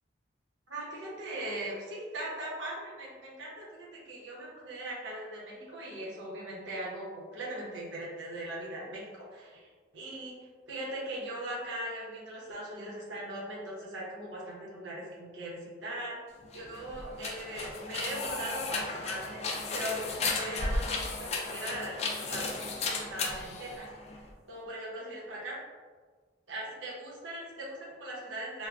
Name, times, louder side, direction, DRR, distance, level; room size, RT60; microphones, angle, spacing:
voice 1, 0.7-9.6 9.9-10.3 10.7-16.2 16.5-19.4 19.7-23.9 24.5-25.6 26.5-28.7, right 1 dB, 85° right, -5 dB, 0.9 m, -39 dB
sound 1, 16.4-24.3, left 3 dB, 35° left, 0.3 m, -35 dB
3.3 x 2.2 x 2.4 m, 1.5 s
head